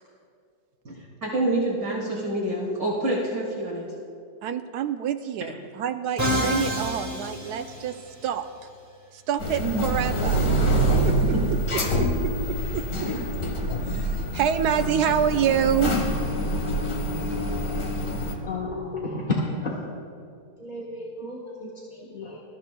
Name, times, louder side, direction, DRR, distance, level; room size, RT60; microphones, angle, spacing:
voice 1, 1.2-3.9 9.6-9.8, right 1 dB, 55° right, -4 dB, 2.4 m, -27 dB
voice 2, 4.4-8.0 8.2-8.5 9.1-10.4 11.0-13.1 13.9-16.0, right 8 dB, 70° right, 9 dB, 1.1 m, -27 dB
Musical instrument, 6.2-8.3, equal, 10° right, 1.4 m, -28 dB
sound 1, 9.4-18.3, right 1 dB, 60° left, 1.9 m, -25 dB
voice 3, 18.5-19.4 19.6-19.8 20.6-22.4, left 3 dB, 30° left, -5 dB, 1.2 m, -32 dB
21.5 x 13.5 x 2.2 m, 2.4 s
omnidirectional pair, 1.9 m